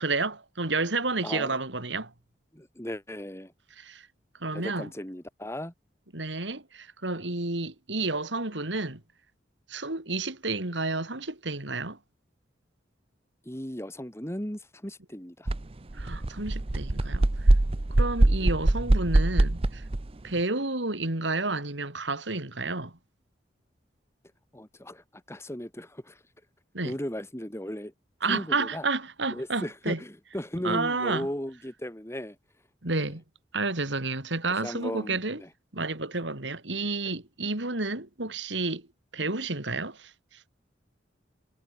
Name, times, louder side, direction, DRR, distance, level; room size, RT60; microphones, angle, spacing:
voice 1, 0.0-2.1 3.8-4.1 4.4-4.9 6.1-9.0 9.7-12.0 15.9-17.5 18.0-19.8 20.2-23.0 26.7-26.9 28.2-30.0 30.6-31.3 32.8-33.2 33.5-35.4 35.7-38.9 39.1-40.4, right 3 dB, 75° right, 3.5 m, -30 dB
voice 2, 1.2-1.6 2.5-3.5 4.5-5.7 13.4-15.5 18.4-18.5 24.5-26.2 26.8-27.9 28.3-28.9 29.3-32.4 32.9-33.1 34.6-35.5 39.2-39.4, equal, 15° left, 3.1 m, -36 dB
sound 1, 15.5-15.6 15.9-20.0, right 1 dB, 30° right, 0.7 m, -23 dB
head